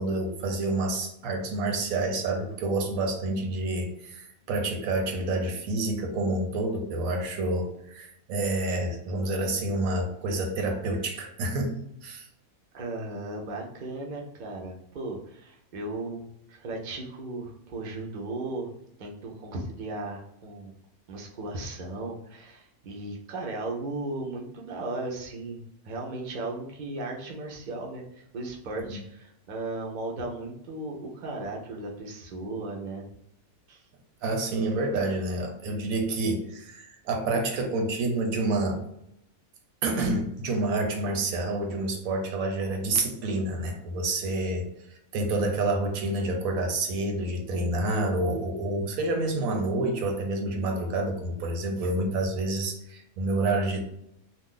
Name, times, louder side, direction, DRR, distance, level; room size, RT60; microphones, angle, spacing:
voice 1, 0.0-12.3 28.9-29.0 34.2-38.8 39.8-44.7 45.1-53.9, right 2 dB, 85° right, 3 dB, 1.1 m, -28 dB
voice 2, 12.7-18.7 19.0-20.7 21.1-28.0 28.3-33.1 33.7-33.8, right 2 dB, 50° right, 0 dB, 0.6 m, -36 dB
2.5 x 2.3 x 3.7 m, 0.78 s
omnidirectional pair, 1.5 m